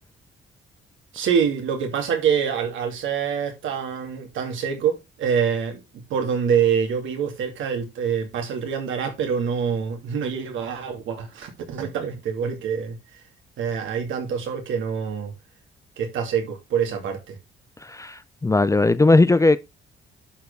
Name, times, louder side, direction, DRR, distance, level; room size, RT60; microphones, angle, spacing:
voice 1, 1.1-13.0 13.6-15.3 16.0-17.4, right 7 dB, 80° right, 2.7 m, -25 dB
voice 2, 17.8-19.6, left 2 dB, 15° left, 0.5 m, -18 dB
11.0 x 4.5 x 3.4 m
cardioid pair, 90°, 20 cm